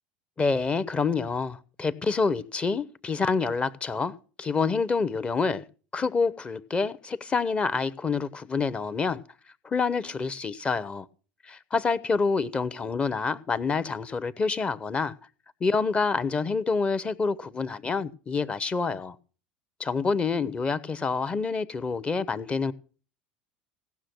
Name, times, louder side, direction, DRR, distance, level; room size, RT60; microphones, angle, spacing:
voice 1, 0.4-5.6 5.9-9.2 9.6-11.1 11.4-15.1 15.6-19.2 19.8-22.7, left 4 dB, 25° left, 0.7 m, -27 dB
16.5 x 6.4 x 6.1 m
figure-of-eight pair, 75°, 5 cm